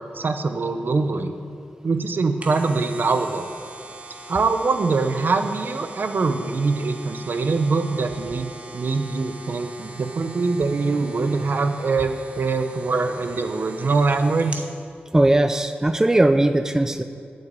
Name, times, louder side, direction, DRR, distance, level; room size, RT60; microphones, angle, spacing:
voice 1, 0.0-1.3 1.8-3.5 4.3-14.6, right 4 dB, 65° right, 8 dB, 0.8 m, -23 dB
sound 1, 2.1-14.7 15.2-15.3, right 2 dB, 35° right, 1.3 m, -42 dB
voice 2, 15.1-17.0, right 1 dB, 15° right, 9 dB, 0.5 m, -18 dB
8.9 x 8.0 x 8.8 m, 2.3 s
wide cardioid pair, 100°, 4 cm